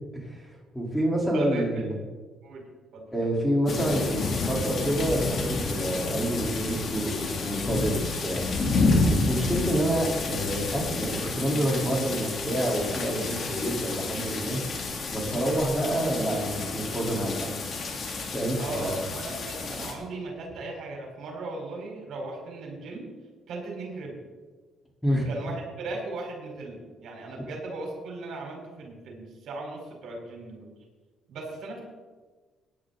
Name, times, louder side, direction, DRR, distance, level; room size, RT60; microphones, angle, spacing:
voice 1, 0.1-1.9 3.1-8.5 9.1-14.6 15.1-17.5 18.3-18.9 25.0-25.3, right 1 dB, ahead, -2 dB, 4.0 m, -28 dB
voice 2, 1.3-1.7 2.4-2.6 2.9-3.4 18.6-23.1 23.5-24.2 25.3-30.7 31.3-31.8, right 2 dB, 70° right, 0 dB, 4.6 m, -37 dB
sound 1, 3.7-19.9, left 3 dB, 50° left, 2.9 m, -30 dB
17.5 x 10.5 x 4.1 m, 1.3 s
cardioid pair, 95°, 0 cm